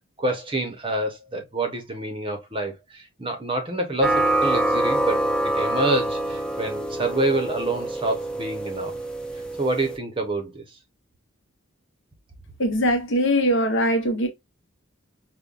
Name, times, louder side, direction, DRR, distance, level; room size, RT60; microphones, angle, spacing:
voice 1, 0.2-5.2 5.4-8.9 9.3-10.8, right 2 dB, 25° right, 0.7 m, -27 dB
sound 1, 4.0-10.0, right 1 dB, 5° left, 0.4 m, -25 dB
voice 2, 12.6-14.3, equal, 60° left, 0.9 m, -21 dB
5.2 x 2.2 x 2.3 m
head